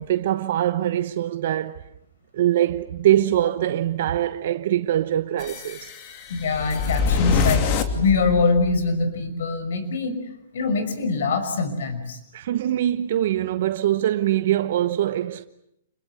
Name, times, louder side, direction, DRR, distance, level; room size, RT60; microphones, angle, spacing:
voice 1, 0.0-1.8 2.3-5.9 12.3-15.5, right 12 dB, 60° right, 1.0 m, -23 dB
sound 1, 5.4-8.9, left 5 dB, 35° left, 2.8 m, -25 dB
voice 2, 6.3-7.6 7.9-10.2 10.5-12.2, left 4 dB, 75° left, 5.7 m, -23 dB
27.5 x 22.0 x 8.2 m
hypercardioid pair, 150°, 0 cm